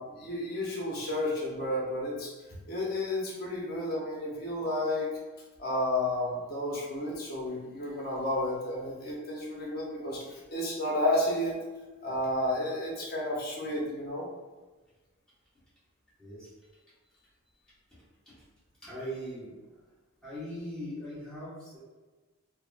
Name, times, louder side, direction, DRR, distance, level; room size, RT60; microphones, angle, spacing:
voice 1, 0.0-2.3 2.7-5.1 5.6-11.5 12.0-14.2, left 1 dB, 45° left, -4 dB, 0.8 m, -31 dB
voice 2, 18.8-19.5 20.2-21.8, equal, 5° left, -12 dB, 1.2 m, -40 dB
3.4 x 2.1 x 2.5 m, 1.2 s
head